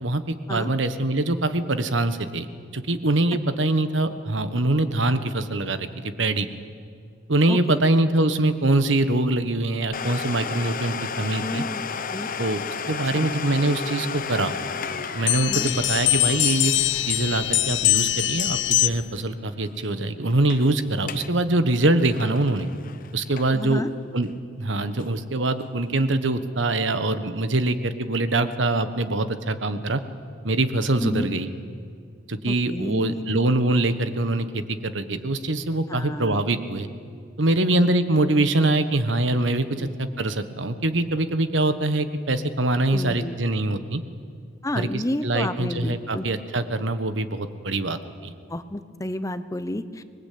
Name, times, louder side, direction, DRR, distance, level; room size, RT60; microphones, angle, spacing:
voice 1, 0.0-2.5 2.7-6.5 7.3-11.6 12.4-12.6 12.9-14.6 15.1-16.7 17.1-22.7 23.1-23.8 24.1-24.3 24.6-30.0 30.4-31.5 32.3-36.9 37.4-44.0 44.7-48.3, right 2 dB, 75° right, 11 dB, 1.4 m, -23 dB
voice 2, 7.5-7.8 11.4-11.8 12.1-12.3 13.1-13.3 15.5-15.7 23.5-23.9 31.0-31.3 32.5-33.3 35.9-36.4 37.6-37.7 39.8-39.9 42.9-43.4 44.6-46.3 48.5-50.1, left 1 dB, 15° left, 11 dB, 0.9 m, -30 dB
Domestic sounds home sounds, 9.9-19.4 19.6-19.7 20.3-20.7 21.0-21.3 21.7-23.7 24.2-24.3 25.0-25.1, left 6 dB, 45° left, 0.9 m, -34 dB
sound 1, 15.3-19.2, left 16 dB, 65° left, 0.6 m, -22 dB
25.5 x 20.5 x 8.6 m, 2.2 s
head